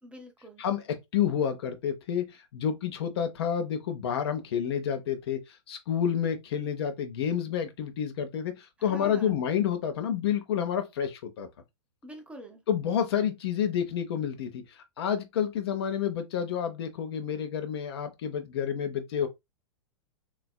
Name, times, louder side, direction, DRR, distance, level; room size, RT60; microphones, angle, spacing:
voice 1, 0.0-0.6 8.8-9.4 12.0-12.6, left 1 dB, 5° right, 0.6 m, -45 dB
voice 2, 0.6-11.5 12.7-19.3, left 8 dB, 55° left, 0.6 m, -29 dB
3.3 x 2.4 x 2.2 m
figure-of-eight pair, 100°, 16 cm